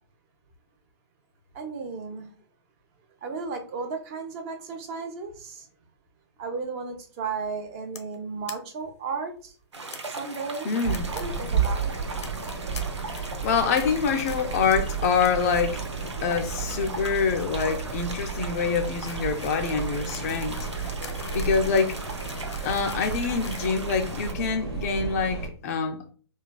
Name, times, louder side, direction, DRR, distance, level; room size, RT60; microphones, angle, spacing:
voice 1, 1.5-2.3 3.2-5.7 6.4-9.5 10.1-10.7 11.1-11.9, right 4 dB, 30° right, 0.5 m, -34 dB
sound 1, 8.0-8.2 8.5-8.6 8.8-8.9 9.1-9.2 9.9-10.0 10.6-11.2 11.5-11.7 12.2-12.8 13.1-13.4 13.8-13.9 14.3-14.6 14.9-15.3 15.5-16.2 16.4-24.5, left 5 dB, 80° left, 0.6 m, -44 dB
sound 2, 9.7-24.3, right 3 dB, 85° right, 0.6 m, -39 dB
voice 2, 10.7-11.1 13.1-15.8 16.2-20.7 21.3-22.0 22.6-26.1, left 5 dB, 35° left, 0.3 m, -26 dB
sound 3, 10.8-25.5, right 6 dB, 70° right, 1.0 m, -32 dB
3.1 x 2.2 x 2.2 m
hypercardioid pair, 130°, 14 cm